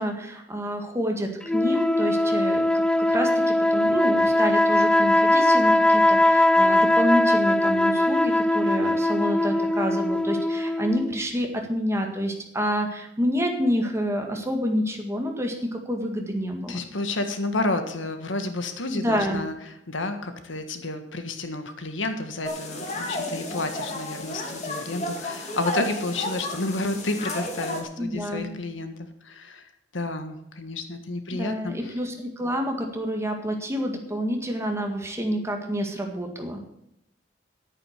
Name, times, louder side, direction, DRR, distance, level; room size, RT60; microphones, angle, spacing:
voice 1, 0.0-2.8 3.1-16.8 18.9-19.4 28.0-28.5 31.3-36.7, equal, 15° right, 3 dB, 1.9 m, -28 dB
sound 1, 1.5-11.2, left 1 dB, 5° left, 0.3 m, -21 dB
voice 2, 16.7-32.0, left 2 dB, 90° left, 8 dB, 1.6 m, -31 dB
sound 2, 22.4-27.8, left 1 dB, 35° left, 2.3 m, -32 dB
11.0 x 9.0 x 6.6 m, 0.81 s
head